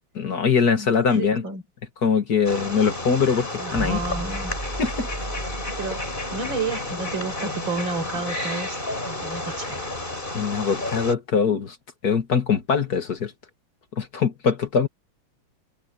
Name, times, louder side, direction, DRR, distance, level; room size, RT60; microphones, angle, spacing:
voice 1, 0.2-1.4 2.0-4.0 4.8-5.1 10.3-11.8 12.0-13.3 14.0-14.9, left 6 dB, 50° left, 2.1 m, -22 dB
voice 2, 0.7-1.6 3.6-4.5 5.8-8.8 9.0-9.9, right 3 dB, 70° right, 5.1 m, -31 dB
Wild animals, 2.4-11.1, left 2 dB, 25° left, 4.5 m, -31 dB
sound 1, 3.7-7.2, right 1 dB, 15° right, 2.7 m, -36 dB
omnidirectional pair, 2.1 m